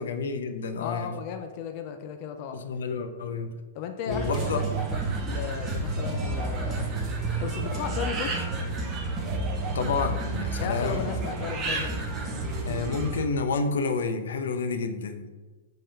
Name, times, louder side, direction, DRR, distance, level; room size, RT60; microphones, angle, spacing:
voice 1, 0.0-1.2 2.5-3.5 4.1-4.6 9.7-11.2 12.7-15.3, left 4 dB, 85° left, 8 dB, 0.7 m, -29 dB
voice 2, 0.8-2.6 3.7-6.9 7.4-8.4 10.6-12.0, left 7 dB, 30° left, 6 dB, 0.4 m, -35 dB
sound 1, 4.1-13.2, right 2 dB, 15° right, 0.6 m, -30 dB
5.6 x 3.5 x 5.5 m, 1.3 s
hypercardioid pair, 170°, 0 cm